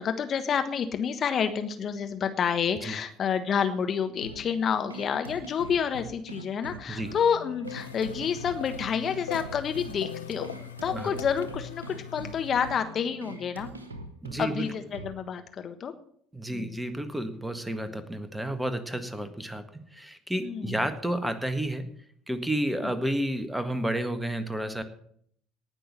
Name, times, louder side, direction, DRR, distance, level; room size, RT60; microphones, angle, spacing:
voice 1, 0.0-10.5 10.8-13.7 14.4-15.9 16.5-16.8 20.4-20.7, left 7 dB, 45° left, 8 dB, 1.3 m, -29 dB
sound 1, 4.2-15.2, right 2 dB, 90° right, 1.1 m, -43 dB
sound 2, 7.6-12.8, left 9 dB, 80° left, 0.6 m, -41 dB
voice 2, 14.2-14.7 16.3-21.9 22.3-24.8, right 1 dB, 5° right, 10 dB, 1.6 m, -31 dB
18.5 x 6.2 x 7.4 m, 0.65 s
figure-of-eight pair, 60°, 0 cm